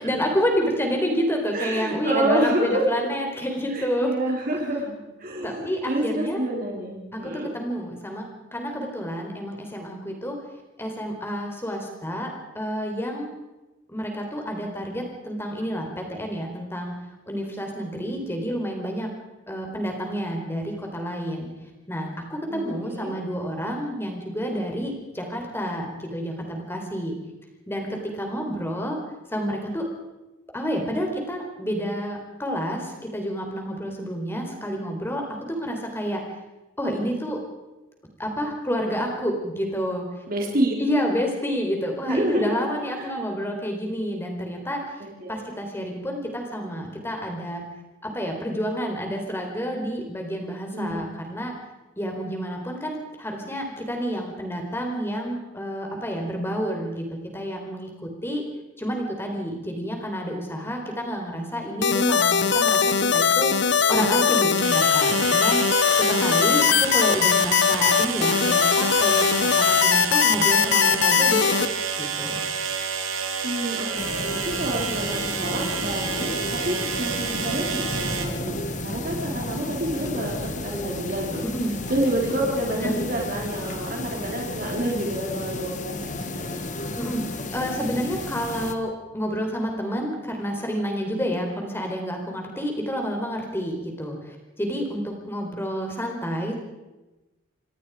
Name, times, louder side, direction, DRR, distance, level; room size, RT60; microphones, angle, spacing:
voice 1, 0.0-4.2 4.5-4.6 5.4-6.4 7.1-10.4 10.8-13.3 13.9-17.0 17.3-19.1 19.5-21.5 21.9-27.1 27.7-29.0 29.3-29.9 30.5-36.2 36.8-37.4 38.2-40.1 40.8-44.8 45.3-47.6 48.0-51.5 52.0-58.4 58.8-71.7 72.0-72.4 81.5-81.8 82.8-82.9 87.0-96.5, equal, 10° left, 2 dB, 4.4 m, -29 dB
voice 2, 1.5-3.1 3.7-7.5 22.5-23.1 40.3-40.7 42.1-42.7 42.9-43.1 45.0-45.4 50.7-51.0 73.4-81.4 81.9-86.6, right 1 dB, 45° right, -1 dB, 4.3 m, -28 dB
sound 1, 61.8-71.7, left 6 dB, 60° left, 0.9 m, -20 dB
sound 2, 62.5-62.6 64.6-78.3, right 6 dB, 90° right, 2.9 m, -29 dB
sound 3, 74.0-88.7, left 2 dB, 40° left, 1.7 m, -33 dB
27.0 x 19.0 x 5.1 m, 1.1 s
head